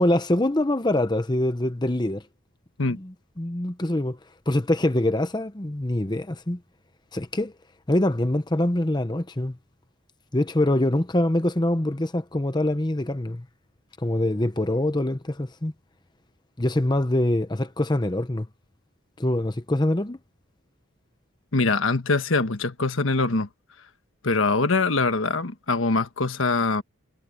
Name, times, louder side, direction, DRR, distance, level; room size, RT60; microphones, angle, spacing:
voice 1, 0.0-2.2 2.9-4.2 4.5-6.6 7.1-7.5 7.9-9.6 10.3-13.4 14.0-15.7 16.6-18.5 19.2-20.2, left 1 dB, 20° left, 0.8 m, -24 dB
voice 2, 21.5-23.5 24.2-26.8, left 3 dB, 70° left, 1.4 m, -23 dB
head